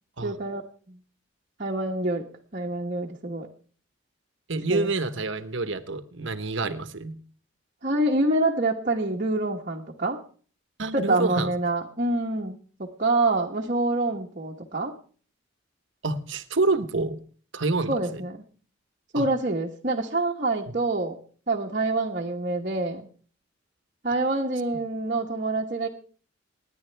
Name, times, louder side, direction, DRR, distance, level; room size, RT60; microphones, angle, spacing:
voice 1, 0.2-0.6 0.9-1.0 1.6-2.3 2.5-3.5 4.7-4.9 7.8-10.2 10.9-14.9 17.9-18.4 19.1-21.2 21.5-23.0 24.0-25.9, right 2 dB, 40° right, -1 dB, 1.2 m, -26 dB
voice 2, 4.5-7.2 10.8-11.5 16.0-17.2 17.5-18.2 19.1-19.3, right 3 dB, 65° right, 11 dB, 1.1 m, -27 dB
27.5 x 10.5 x 3.4 m, 0.43 s
head